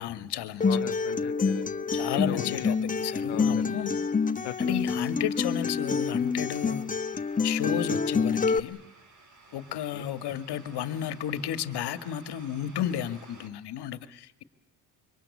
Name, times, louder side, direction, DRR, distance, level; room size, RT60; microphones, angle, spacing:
voice 1, 0.0-0.7 1.9-4.0 4.6-6.9 7.4-8.8 9.5-14.4, left 10 dB, 60° left, 12 dB, 2.0 m, -33 dB
Acoustic guitar, 0.6-8.6, left 5 dB, 20° left, 1.0 m, -27 dB
voice 2, 0.7-1.7 2.1-2.8 3.3-3.7 4.4-4.6 7.6-7.9 9.9-10.1, left 15 dB, 90° left, 6 dB, 1.0 m, -38 dB
sound 1, 2.5-13.5, right 3 dB, 40° right, 5.0 m, -56 dB
27.0 x 24.5 x 8.5 m, 0.81 s
cardioid pair, 160°, 44 cm